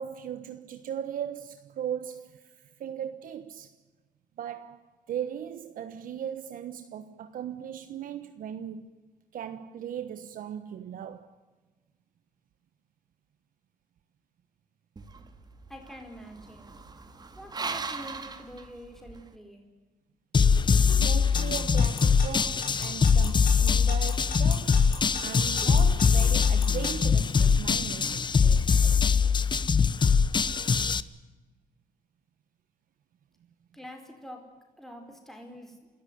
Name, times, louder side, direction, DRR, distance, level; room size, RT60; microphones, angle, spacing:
voice 1, 0.0-3.7 4.4-8.9 9.3-11.4 21.0-24.9 25.2-29.5, right 9 dB, 70° right, 1.3 m, -38 dB
sound 1, 15.0-19.3, right 4 dB, 30° right, 2.2 m, -39 dB
voice 2, 15.7-16.7 17.4-19.6 33.7-34.4 34.8-35.8, equal, ahead, 4.6 m, -45 dB
sound 2, 20.3-31.0, left 6 dB, 30° left, 0.8 m, -22 dB
Alarm / Clock, 21.3-26.9, left 6 dB, 70° left, 7.0 m, -37 dB
29.0 x 14.0 x 9.8 m
cardioid pair, 110°, 15 cm